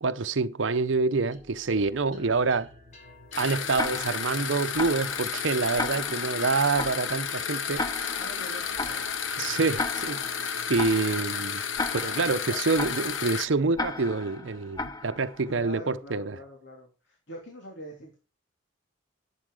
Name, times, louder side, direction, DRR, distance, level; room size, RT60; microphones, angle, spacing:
voice 1, 0.0-2.7 3.4-8.2 9.4-10.4 10.7-11.6 11.9-16.3, right 4 dB, 80° right, 0.7 m, -27 dB
sound 1, 1.3-16.0, left 2 dB, 35° left, 3.7 m, -52 dB
sound 2, 3.3-13.5, left 7 dB, 90° left, 1.0 m, -32 dB
Tick-tock, 3.8-15.6, left 2 dB, 20° left, 0.7 m, -36 dB
voice 2, 8.2-9.1 9.7-10.0 12.5-12.6 15.4-18.2, equal, 70° left, 3.1 m, -44 dB
11.5 x 8.5 x 4.9 m
head